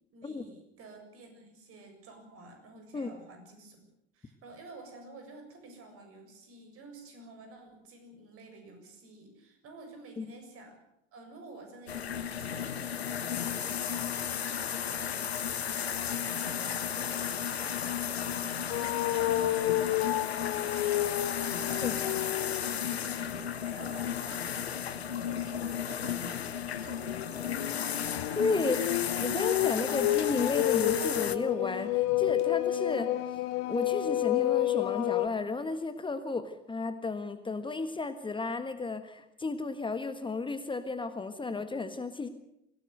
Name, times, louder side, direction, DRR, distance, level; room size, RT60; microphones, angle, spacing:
voice 1, 0.1-3.8 4.1-10.8 11.1-24.6 24.9-26.5 26.8-27.9, right 2 dB, 45° right, 5 dB, 7.1 m, -51 dB
sound 1, 11.9-31.4, left 8 dB, 75° left, 1.3 m, -34 dB
sound 2, 18.7-22.8 23.3-23.6 26.0-35.3, left 15 dB, 50° left, 1.2 m, -30 dB
voice 2, 28.4-28.8 29.2-33.1 33.7-42.3, left 3 dB, 15° left, 9 dB, 1.5 m, -33 dB
24.0 x 17.0 x 8.0 m, 0.80 s
figure-of-eight pair, 70°, 32 cm